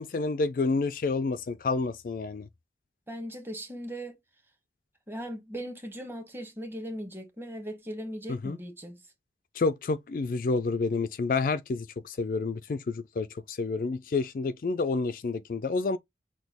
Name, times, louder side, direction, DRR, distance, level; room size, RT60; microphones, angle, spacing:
voice 1, 0.0-2.5 8.3-8.6 9.6-16.0, left 3 dB, 50° left, 0.3 m, -29 dB
voice 2, 3.1-4.1 5.1-9.0, equal, 15° right, 1.0 m, -38 dB
6.0 x 2.3 x 3.4 m
head